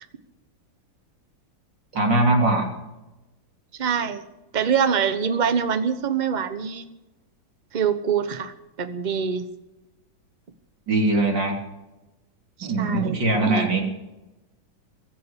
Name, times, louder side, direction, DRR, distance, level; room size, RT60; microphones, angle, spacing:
voice 1, 1.9-2.7 10.9-11.6 12.6-13.8, right 2 dB, 65° right, 1 dB, 4.0 m, -21 dB
voice 2, 3.8-4.2 4.5-6.8 7.7-8.5 8.8-9.5 12.6-13.7, right 7 dB, 30° right, 10 dB, 0.9 m, -24 dB
22.5 x 7.7 x 8.3 m, 1.0 s
omnidirectional pair, 2.1 m